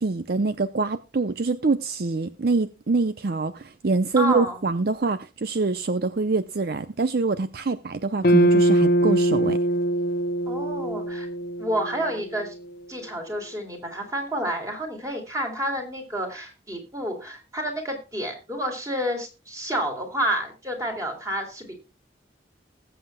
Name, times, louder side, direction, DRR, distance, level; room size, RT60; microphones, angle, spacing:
voice 1, 0.0-9.6, right 3 dB, 60° right, 0.6 m, -25 dB
voice 2, 4.2-4.6 10.5-11.3 11.6-12.5 12.9-21.8, equal, 20° right, 3.5 m, -29 dB
sound 1, 8.2-12.6, right 1 dB, 55° left, 0.9 m, -22 dB
20.0 x 7.9 x 2.2 m
head